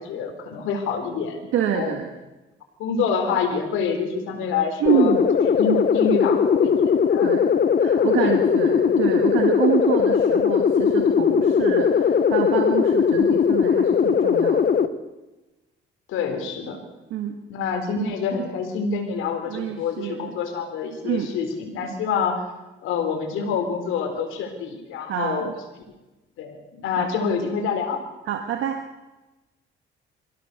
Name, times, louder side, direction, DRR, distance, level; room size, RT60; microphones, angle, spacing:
voice 1, 0.0-1.4 1.7-1.9 2.8-7.3 7.9-8.4 8.8-8.9 16.1-16.8 17.5-22.4 22.8-25.5 26.4-28.0, left 5 dB, 90° left, 7 dB, 4.0 m, -27 dB
voice 2, 1.5-2.1 4.8-5.3 7.2-7.5 7.8-14.8 17.1-17.3 19.5-20.3 21.0-21.3 25.0-25.5 27.0-27.1 28.3-28.8, right 9 dB, 85° right, 4 dB, 1.7 m, -26 dB
sound 1, 4.9-14.9, left 7 dB, 50° left, 1.3 m, -19 dB
24.5 x 16.0 x 6.8 m, 1.1 s
cardioid pair, 90°, 20 cm